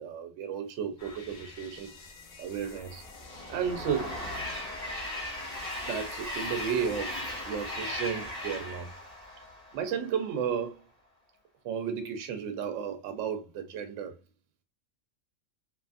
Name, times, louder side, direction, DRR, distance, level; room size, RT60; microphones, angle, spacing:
voice 1, 0.0-1.9 2.4-3.0 3.5-4.2 5.8-7.2 7.5-8.9 9.7-10.8 11.6-14.1, right 7 dB, 70° right, 0.9 m, -33 dB
sound 1, 1.0-7.6, left 3 dB, 55° left, 0.6 m, -50 dB
Train, 2.6-10.1, left 1 dB, 35° right, 0.8 m, -38 dB
2.6 x 2.5 x 2.3 m
omnidirectional pair, 1.4 m